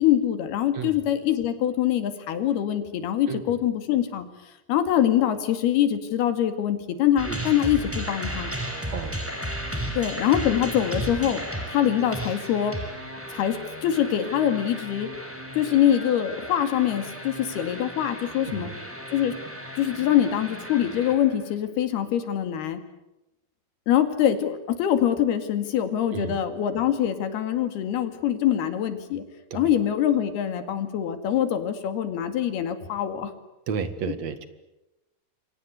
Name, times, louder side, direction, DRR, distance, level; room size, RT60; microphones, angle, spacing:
voice 1, 0.0-8.5 10.0-11.4 11.7-12.8 13.3-15.1 15.5-18.7 19.1-19.3 19.8-22.8 23.9-29.2 29.5-33.3, left 10 dB, 75° left, 9 dB, 4.1 m, -24 dB
sound 1, 7.2-21.5, equal, 5° right, 5.3 m, -35 dB
voice 2, 33.7-34.5, right 6 dB, 50° right, 11 dB, 2.6 m, -32 dB
29.0 x 24.5 x 8.2 m, 0.95 s
omnidirectional pair, 4.6 m